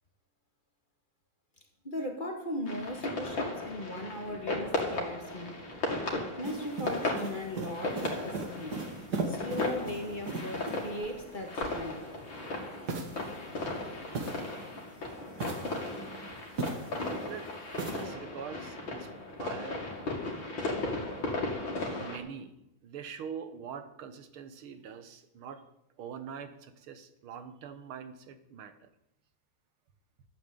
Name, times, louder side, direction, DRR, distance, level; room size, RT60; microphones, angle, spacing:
voice 1, 1.8-5.6 6.1-8.9 9.3-12.1, left 1 dB, 25° left, 3 dB, 2.0 m, -38 dB
sound 1, 2.7-22.2, left 2 dB, 65° left, 3.2 m, -36 dB
sound 2, 6.4-11.1 12.9-14.8 15.3-17.1 17.8-18.1, right 3 dB, 50° right, 2.3 m, -38 dB
voice 2, 17.0-19.1 19.4-20.0 21.9-22.6 22.8-25.6 26.0-28.9, right 7 dB, 90° right, 11 dB, 2.0 m, -44 dB
13.0 x 8.8 x 8.4 m, 0.80 s
omnidirectional pair, 2.3 m